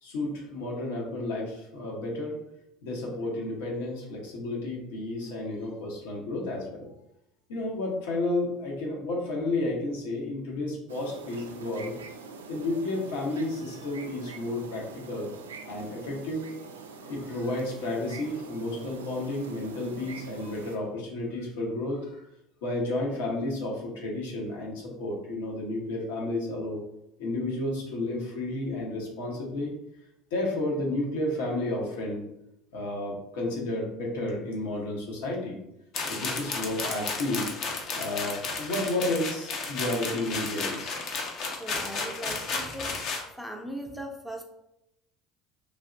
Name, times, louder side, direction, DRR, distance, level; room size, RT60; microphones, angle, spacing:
voice 1, 0.0-2.4 2.8-6.9 7.5-11.9 12.5-15.3 15.6-16.4 17.0-22.2 22.6-26.8 27.2-29.7 30.3-32.2 32.7-35.6 36.1-37.5 37.9-41.0, left 2 dB, 75° left, -2 dB, 1.0 m, -32 dB
sound 1, 10.9-20.8, right 5 dB, 85° right, 0.3 m, -44 dB
sound 2, 35.9-43.2, left 4 dB, 55° left, 0.7 m, -33 dB
voice 2, 41.6-43.0 43.4-44.4, right 1 dB, ahead, 2 dB, 0.6 m, -38 dB
3.6 x 2.8 x 2.6 m, 0.83 s
hypercardioid pair, 65°, 0 cm